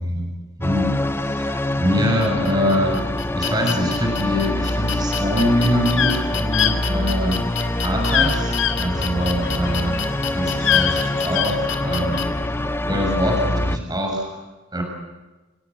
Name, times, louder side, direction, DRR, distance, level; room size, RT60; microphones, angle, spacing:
sound 1, 0.6-13.8, left 1 dB, 10° left, 1.0 m, -25 dB
voice 1, 0.6-0.9 1.2-3.0 3.3-10.0 10.3-14.3 14.7-14.8, equal, 20° right, 1 dB, 6.9 m, -24 dB
sound 2, 2.2-12.2, left 8 dB, 60° left, 3.1 m, -31 dB
sound 3, 5.9-6.1 6.5-6.7 8.1-8.3 8.6-8.7 10.5-11.5, left 9 dB, 85° left, 4.5 m, -20 dB
29.5 x 20.0 x 8.5 m, 1.2 s
head